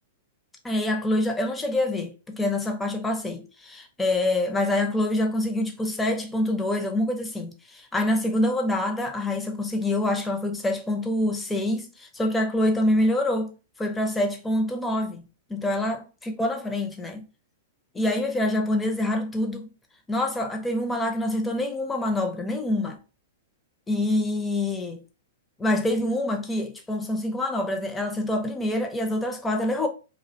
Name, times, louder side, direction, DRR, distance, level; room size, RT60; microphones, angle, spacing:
voice 1, 0.6-13.5 13.8-15.2 15.5-16.1 16.4-17.2 17.9-19.7 20.1-23.0 23.9-25.0 25.6-29.9, left 1 dB, 10° left, 0.5 m, -26 dB
2.4 x 2.1 x 2.7 m
hypercardioid pair, 110°, 0 cm